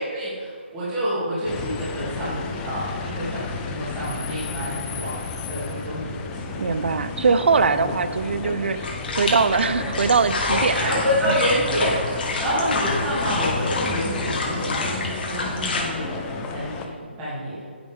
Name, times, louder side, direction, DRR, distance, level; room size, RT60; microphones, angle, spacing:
voice 1, 0.0-5.2 5.5-6.6 10.7-17.6, equal, 15° right, -11 dB, 2.6 m, -28 dB
sound 1, 1.5-16.8, left 4 dB, 10° left, 0.4 m, -32 dB
voice 2, 6.6-10.9, right 4 dB, 65° right, 13 dB, 0.5 m, -21 dB
sound 2, 8.8-15.8, left 3 dB, 55° left, 2.2 m, -28 dB
10.0 x 9.4 x 3.6 m, 2.3 s
hypercardioid pair, 170°, 6 cm